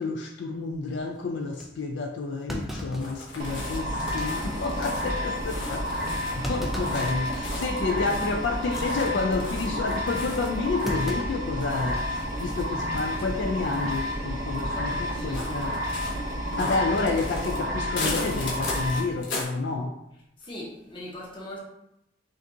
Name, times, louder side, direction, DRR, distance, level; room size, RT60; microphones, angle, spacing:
voice 1, 0.0-15.7 16.6-19.9, left 3 dB, 70° left, 3 dB, 0.4 m, -30 dB
Thump thud, 1.6-1.7 2.5-3.8 4.2-4.3 4.8-5.0 6.4-7.1 7.5-7.8 8.6-8.9 10.8-12.1 12.4-12.5 13.6-13.9, equal, ahead, 0.4 m, -37 dB
sound 1, 3.0-19.4, left 2 dB, 90° left, 1.0 m, -38 dB
sound 2, 3.4-19.0, equal, 55° right, 0.7 m, -30 dB
voice 2, 3.5-4.6 7.3-8.1 14.7-15.9 16.5-16.7 20.4-21.6, left 1 dB, 30° left, -4 dB, 0.9 m, -42 dB
5.2 x 2.5 x 2.7 m, 0.83 s
head